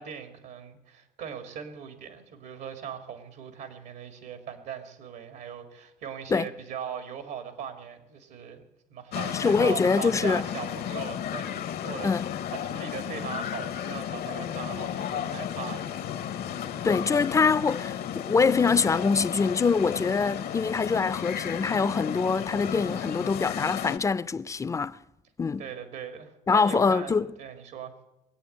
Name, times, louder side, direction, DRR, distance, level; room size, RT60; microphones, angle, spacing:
voice 1, 0.0-8.6 8.9-12.1 12.5-16.2 25.6-27.9, right 7 dB, 80° right, 2.0 m, -39 dB
sound 1, 9.1-24.0, left 10 dB, 65° left, 0.9 m, -33 dB
voice 2, 9.3-10.4 12.0-12.3 16.8-25.0 25.4-25.6 26.5-27.3, left 5 dB, 20° left, 0.4 m, -24 dB
21.0 x 8.4 x 7.8 m
cardioid pair, 110°, 17 cm